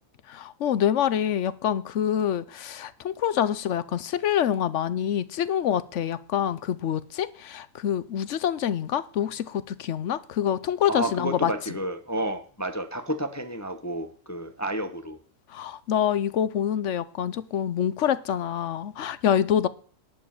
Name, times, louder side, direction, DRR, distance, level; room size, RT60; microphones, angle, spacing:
voice 1, 0.3-11.5 15.5-19.7, left 9 dB, 60° left, 0.9 m, -26 dB
voice 2, 10.9-15.2, right 1 dB, 15° left, 0.7 m, -31 dB
11.5 x 5.5 x 8.7 m
omnidirectional pair, 1.6 m